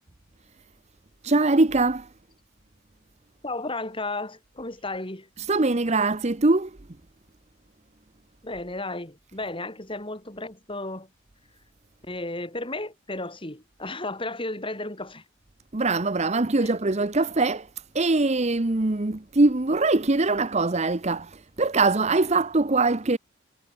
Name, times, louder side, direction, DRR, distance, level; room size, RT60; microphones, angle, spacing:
voice 1, 1.2-2.1 5.4-6.7 15.7-17.7 17.9-23.2, right 3 dB, 35° right, 0.9 m, -22 dB
voice 2, 3.4-5.3 8.4-11.1 12.1-15.2 16.6-16.8, left 2 dB, 25° left, 5.5 m, -34 dB
head